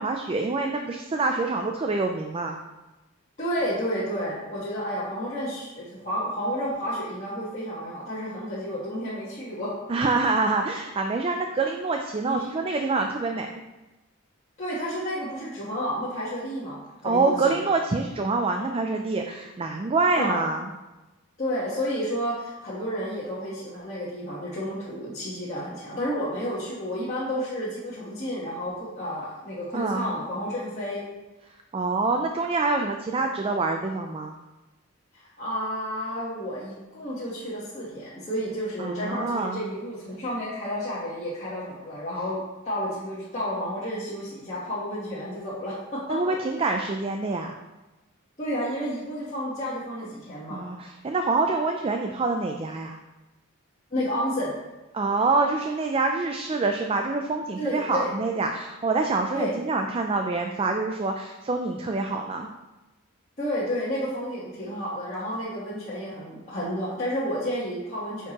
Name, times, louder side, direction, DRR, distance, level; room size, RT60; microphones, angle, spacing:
voice 1, 0.0-2.6 9.9-13.6 17.0-20.7 29.7-30.0 31.7-34.3 38.8-39.6 46.1-47.6 50.5-53.0 54.9-62.5, right 3 dB, 25° right, 4 dB, 0.4 m, -26 dB
voice 2, 3.4-9.7 12.2-12.5 14.6-17.6 20.1-20.4 21.4-31.0 33.2-33.3 35.4-42.4 42.6-46.7 48.4-50.6 53.9-54.5 57.6-58.1 59.3-59.6 63.4-68.3, equal, 35° left, -9 dB, 1.3 m, -31 dB
9.1 x 4.6 x 2.9 m, 1.1 s
head